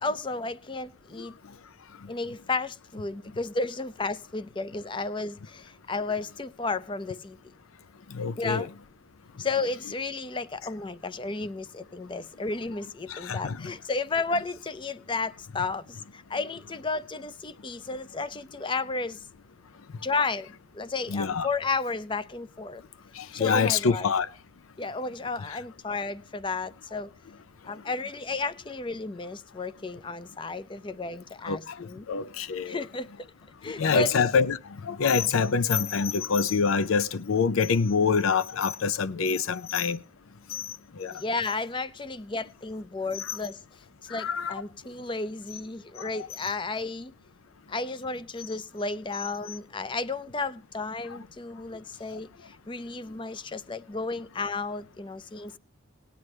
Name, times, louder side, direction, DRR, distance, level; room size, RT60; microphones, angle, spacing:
voice 1, 0.0-1.3 2.1-7.4 8.4-8.7 9.4-19.2 20.0-22.8 23.3-24.1 24.8-27.1 27.6-32.1 32.7-33.1 33.6-34.1 41.1-43.6 44.1-47.1 47.7-55.6, left 3 dB, 25° left, 0.5 m, -33 dB
voice 2, 8.1-8.7 13.1-13.7 21.1-21.5 23.1-24.3 25.4-25.6 31.5-32.8 33.7-40.0 40.5-41.2 43.1-43.4 44.1-44.6 46.0-46.3 49.1-49.6 51.1-51.2 52.1-52.2, left 5 dB, 90° left, 0.5 m, -26 dB
19.0 x 9.4 x 3.2 m
head